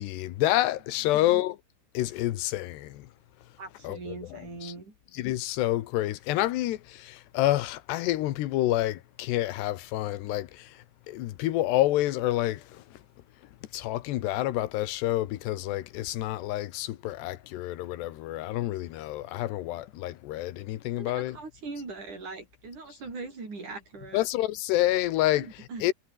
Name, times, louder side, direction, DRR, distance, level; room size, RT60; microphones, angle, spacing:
voice 1, 0.0-1.6 1.9-3.1 3.8-4.2 4.6-4.7 5.2-10.7 11.1-12.6 13.7-21.4 24.1-25.5 25.8-25.9, left 15 dB, 90° left, 3.3 m, -28 dB
voice 2, 3.6-4.9 21.0-24.3 25.3-25.8, right 3 dB, 50° right, 8.4 m, -41 dB
omnidirectional pair, 4.7 m